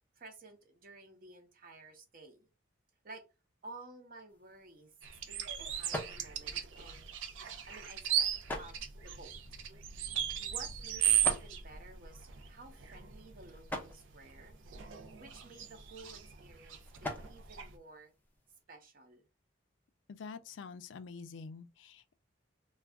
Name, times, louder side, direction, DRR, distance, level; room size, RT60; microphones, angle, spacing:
voice 1, 0.0-2.5 3.0-3.2 3.6-4.9 5.3-7.1 7.7-8.3 8.6-9.3 9.7-9.8 10.4-14.6 15.2-18.1 18.7-19.2, right 2 dB, 50° right, 0.7 m, -53 dB
sound 1, 4.3-18.6, left 1 dB, 10° left, 0.4 m, -48 dB
sound 2, 5.0-17.7, right 9 dB, 85° right, 0.5 m, -36 dB
voice 2, 20.1-22.1, left 5 dB, 75° left, 0.4 m, -47 dB
2.3 x 2.2 x 3.5 m
head